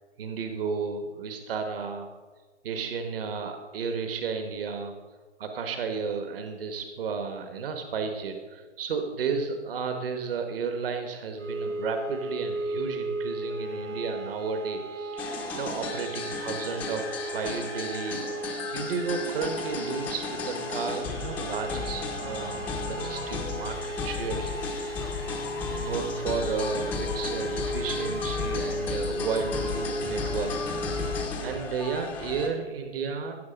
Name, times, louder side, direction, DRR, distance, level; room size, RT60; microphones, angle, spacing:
voice 1, 0.2-2.1 2.6-4.9 5.4-18.2 18.7-24.9 25.6-30.8 31.4-33.4, right 5 dB, 50° right, 6 dB, 1.4 m, -33 dB
sound 1, 11.4-31.3, right 1 dB, 90° right, 3.1 m, -35 dB
sound 2, 15.2-32.5, left 4 dB, 5° left, 0.6 m, -34 dB
16.0 x 6.6 x 5.2 m, 1.4 s
hypercardioid pair, 150°, 36 cm